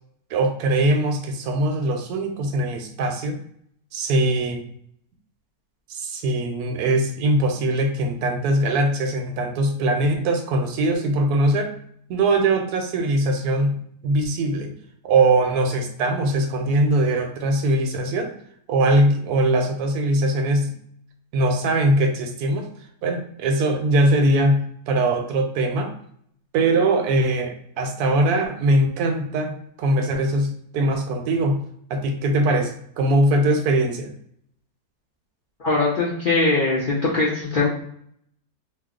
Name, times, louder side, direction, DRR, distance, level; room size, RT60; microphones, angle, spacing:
voice 1, 0.3-3.4 3.9-4.6 5.9-11.7 12.1-13.8 14.0-14.7 15.0-18.3 18.7-20.7 21.3-22.7 23.0-25.9 26.5-31.6 31.9-32.7 33.0-34.1, right 1 dB, 80° right, 5 dB, 1.1 m, -21 dB
voice 2, 35.6-37.7, left 3 dB, 60° left, -6 dB, 0.5 m, -21 dB
2.8 x 2.0 x 3.7 m, 0.66 s
omnidirectional pair, 1.6 m